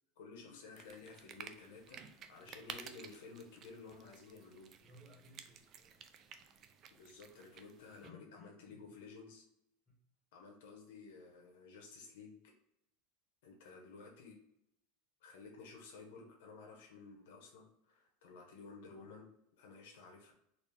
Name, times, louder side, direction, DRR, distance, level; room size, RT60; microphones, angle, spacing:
voice 1, 0.2-4.7 6.9-9.4 10.3-12.4 13.4-14.3 15.2-20.3, left 4 dB, 80° left, 1 dB, 1.0 m, -54 dB
sound 1, 0.7-8.1, right 7 dB, 30° right, 0.4 m, -54 dB
voice 2, 4.8-6.1 8.0-8.8 9.9-10.0, left 2 dB, ahead, -6 dB, 1.5 m, -61 dB
4.2 x 2.5 x 3.3 m, 0.79 s
supercardioid pair, 160°, 0 cm